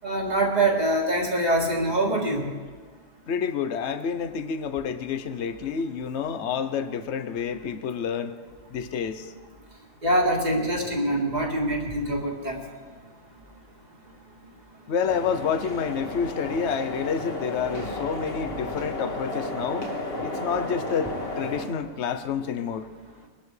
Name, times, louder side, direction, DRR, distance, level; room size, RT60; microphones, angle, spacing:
voice 1, 0.0-2.4 10.0-12.6, right 1 dB, 35° right, 0 dB, 1.9 m, -24 dB
voice 2, 3.3-8.3 8.7-9.3 14.9-19.9 20.2-21.1 21.4-22.9, left 6 dB, 65° left, 11 dB, 1.0 m, -29 dB
sound 1, 15.1-21.7, left 1 dB, 50° left, 2.0 m, -33 dB
22.5 x 12.0 x 3.3 m, 1.5 s
omnidirectional pair, 1.3 m